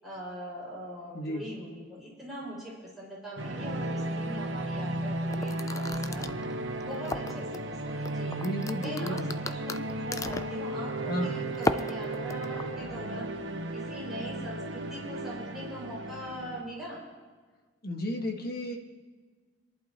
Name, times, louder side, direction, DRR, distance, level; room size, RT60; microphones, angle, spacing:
voice 1, 0.0-6.3 6.8-8.4 8.8-13.3 13.7-17.0, equal, ahead, -7 dB, 5.6 m, -41 dB
voice 2, 1.1-1.5 8.3-9.3 11.1-11.4 17.8-18.8, equal, 55° left, 2 dB, 1.6 m, -33 dB
sound 1, 3.4-16.6, right 2 dB, 80° right, 1.0 m, -35 dB
sound 2, 5.3-7.6 8.1-10.6 11.5-12.7, left 3 dB, 15° left, 0.3 m, -34 dB
28.5 x 11.5 x 3.0 m, 1.4 s
head